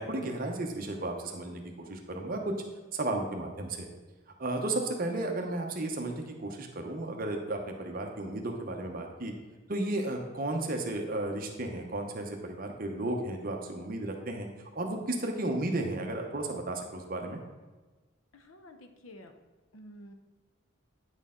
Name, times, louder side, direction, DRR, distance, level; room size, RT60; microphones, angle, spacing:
voice 1, 0.0-1.6 1.9-2.5 2.9-3.9 4.4-9.3 9.7-14.5 14.7-17.4, right 2 dB, 45° right, 3 dB, 0.9 m, -33 dB
voice 2, 18.3-19.3 19.7-20.1, equal, 80° left, 7 dB, 0.8 m, -50 dB
9.4 x 6.4 x 3.8 m, 1.3 s
head